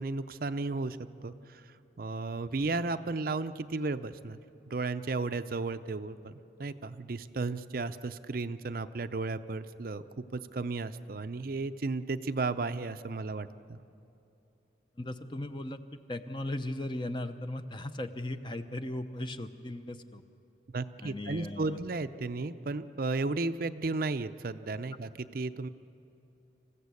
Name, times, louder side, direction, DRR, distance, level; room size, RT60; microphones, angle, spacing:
voice 1, 0.0-1.7 2.0-4.4 4.7-13.8 20.7-25.7, right 3 dB, 50° right, 11 dB, 0.6 m, -34 dB
voice 2, 15.0-20.2 21.0-21.8, left 1 dB, 25° left, 8 dB, 0.7 m, -37 dB
27.0 x 15.5 x 8.4 m, 2.8 s
head